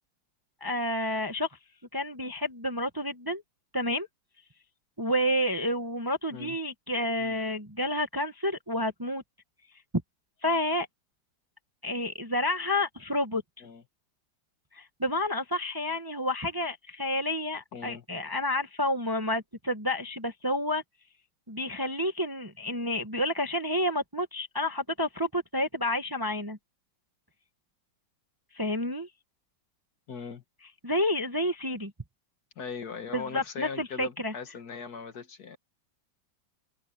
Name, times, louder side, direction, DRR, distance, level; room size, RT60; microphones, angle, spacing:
voice 1, 0.6-1.5 1.9-3.4 3.7-4.1 5.0-9.2 10.4-10.9 11.8-13.4 14.7-20.8 21.5-26.6 28.5-29.1 30.8-31.9 33.1-34.3, left 1 dB, 15° right, 1.1 m, -30 dB
voice 2, 17.7-18.0 30.1-30.4 32.6-35.6, left 5 dB, 55° left, 1.8 m, -39 dB
omnidirectional pair, 2.1 m